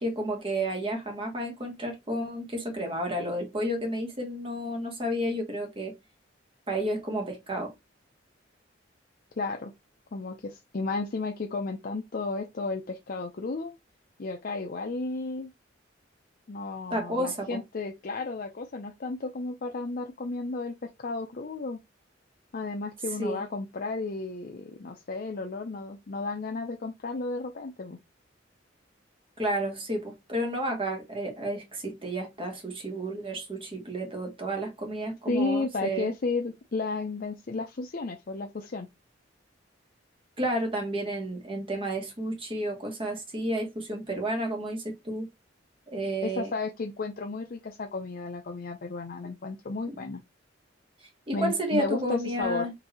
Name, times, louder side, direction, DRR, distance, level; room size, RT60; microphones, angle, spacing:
voice 1, 0.0-5.9 6.7-7.7 16.9-17.6 23.2-23.4 29.4-36.1 40.4-45.3 45.9-46.5 49.9-50.0 51.3-52.7, right 1 dB, 30° right, 1.3 m, -31 dB
voice 2, 9.4-9.7 10.1-13.7 14.2-15.5 16.5-21.8 22.5-28.0 35.3-38.9 46.2-50.2 51.3-52.7, left 3 dB, 50° left, 0.5 m, -33 dB
4.0 x 2.7 x 4.2 m
head